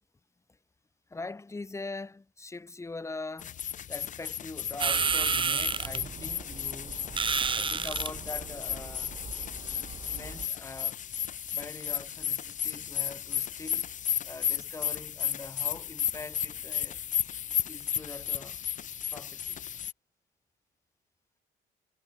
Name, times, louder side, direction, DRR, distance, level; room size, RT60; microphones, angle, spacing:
voice 1, 1.1-3.6 3.9-7.0 7.5-9.2 10.1-11.0 11.5-13.9 14.2-17.0 17.7-18.6 19.1-19.6, left 3 dB, 15° left, 2.6 m, -42 dB
sound 1, 3.4-19.9, left 9 dB, 50° left, 1.8 m, -34 dB
sound 2, 4.8-10.4, right 6 dB, 30° right, 1.6 m, -32 dB
cardioid pair, 110°, 17 cm